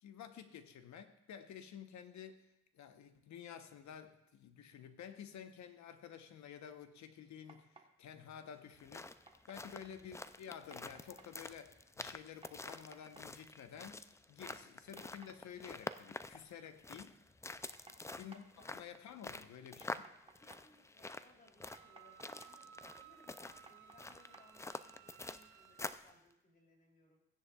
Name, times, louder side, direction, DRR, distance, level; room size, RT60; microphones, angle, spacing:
voice 1, 0.0-2.5 2.7-9.1 9.5-14.0 14.3-17.2 18.1-18.5 18.7-20.1, left 8 dB, 70° left, 9 dB, 1.0 m, -51 dB
sound 1, 7.3-25.2, right 3 dB, 20° right, 1.2 m, -65 dB
sound 2, 8.7-26.1, left 3 dB, 10° left, 0.3 m, -48 dB
voice 2, 9.6-10.0 14.5-14.8 17.8-18.2 18.5-18.8 20.4-27.2, left 1 dB, 30° left, 0 dB, 2.9 m, -67 dB
Wind instrument woodwind instrument, 21.6-25.9, right 11 dB, 85° right, 0.6 m, -60 dB
16.0 x 9.9 x 2.4 m, 0.85 s
cardioid pair, 90°, 30 cm